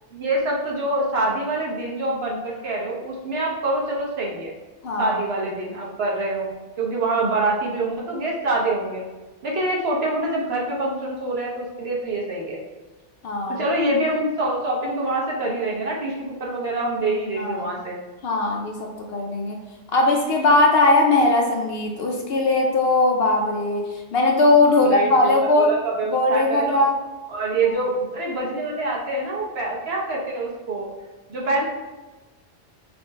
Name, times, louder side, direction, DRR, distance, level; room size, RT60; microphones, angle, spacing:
voice 1, 0.1-4.5 5.0-6.5 6.8-9.0 9.4-12.6 13.5-18.0 24.7-26.9 27.3-30.9 31.3-31.7, right 2 dB, 60° right, -3 dB, 1.1 m, -25 dB
voice 2, 4.8-5.1 13.2-13.6 17.4-17.7 18.2-19.6 19.9-23.8 24.1-25.7 26.1-26.9 27.5-27.8, left 2 dB, 60° left, 1 dB, 0.7 m, -19 dB
4.2 x 2.1 x 4.4 m, 1.2 s
omnidirectional pair, 1.2 m